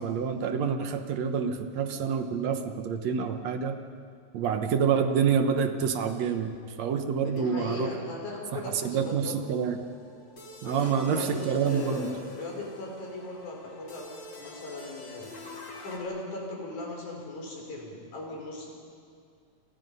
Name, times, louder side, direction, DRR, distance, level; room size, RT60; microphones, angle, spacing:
voice 1, 0.0-3.8 4.3-7.9 8.5-9.8 10.6-12.1, right 6 dB, 65° right, 7 dB, 2.3 m, -27 dB
voice 2, 7.2-9.3 10.6-14.1 14.4-15.3 15.8-18.7, left 2 dB, 80° left, 0 dB, 6.2 m, -38 dB
sound 1, 9.3-16.0, left 2 dB, 40° left, 3.6 m, -46 dB
28.5 x 27.0 x 5.5 m, 2.2 s
omnidirectional pair, 3.4 m